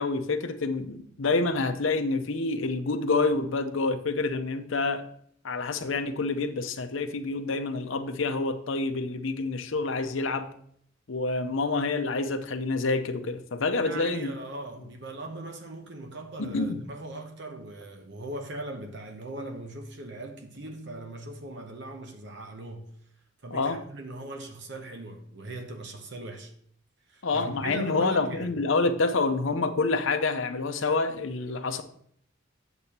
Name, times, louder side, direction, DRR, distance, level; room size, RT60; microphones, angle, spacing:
voice 1, 0.0-5.0 5.4-10.5 11.1-14.3 16.4-16.8 23.5-23.8 27.2-31.8, left 3 dB, 75° left, 0.7 m, -27 dB
voice 2, 13.8-22.9 23.4-26.5 27.1-28.5, right 2 dB, 60° right, 0.9 m, -39 dB
8.3 x 7.0 x 2.9 m
head